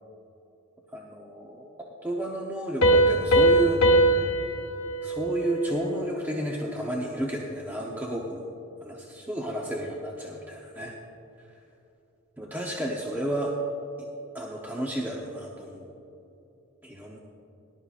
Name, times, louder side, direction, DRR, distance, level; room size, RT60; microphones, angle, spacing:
voice 1, 0.9-4.2 5.0-8.5 8.8-10.9 12.4-13.5 14.3-15.9 16.8-17.2, right 1 dB, 10° right, -2 dB, 0.8 m, -32 dB
Piano, 2.8-6.2, right 1 dB, 70° left, 1.2 m, -22 dB
19.0 x 12.0 x 2.5 m, 2.9 s
head